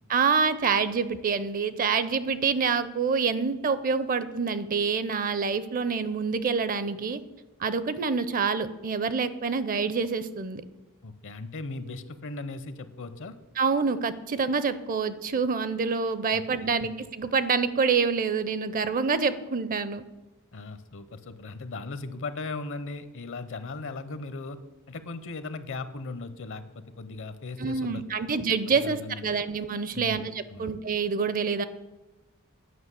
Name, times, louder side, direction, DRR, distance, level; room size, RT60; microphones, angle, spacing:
voice 1, 0.1-7.2 7.6-10.6 13.6-20.0 27.6-31.6, right 5 dB, 40° right, 14 dB, 0.5 m, -27 dB
voice 2, 11.0-13.3 16.3-16.7 20.5-24.6 24.9-28.3 28.7-29.3 29.9-30.7, left 3 dB, 60° left, 12 dB, 0.8 m, -38 dB
9.6 x 5.5 x 8.2 m, 1.1 s
head